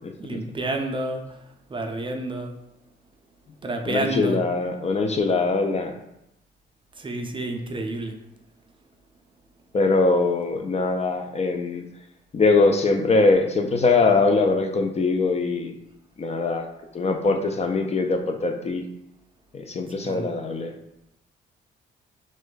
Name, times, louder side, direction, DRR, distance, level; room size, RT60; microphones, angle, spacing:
voice 1, 0.2-1.4 1.7-2.5 3.6-4.4 7.0-8.2 20.0-20.3, right 2 dB, 25° right, 4 dB, 0.5 m, -29 dB
voice 2, 3.9-5.9 9.7-11.9 12.3-15.8 16.2-16.7 16.9-18.8 19.5-20.7, left 3 dB, 35° left, 4 dB, 0.4 m, -22 dB
3.1 x 2.5 x 3.8 m, 0.86 s
cardioid pair, 90°, 20 cm